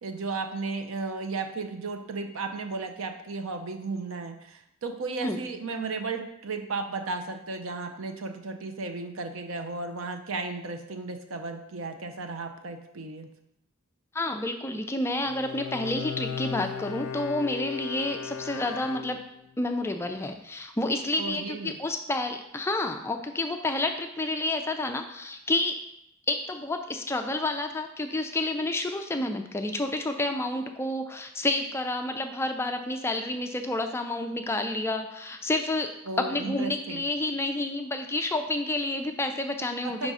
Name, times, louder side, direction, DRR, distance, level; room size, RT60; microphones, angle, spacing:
voice 1, 0.0-13.3 21.2-21.8 36.1-37.0 39.8-40.1, right 3 dB, 75° right, 6 dB, 0.6 m, -34 dB
voice 2, 14.1-19.2 19.6-25.8 26.3-35.9 36.2-40.1, left 2 dB, 10° left, 5 dB, 0.3 m, -29 dB
Bowed string instrument, 15.3-19.6, left 7 dB, 85° left, 0.4 m, -36 dB
4.9 x 3.6 x 5.4 m, 0.79 s
head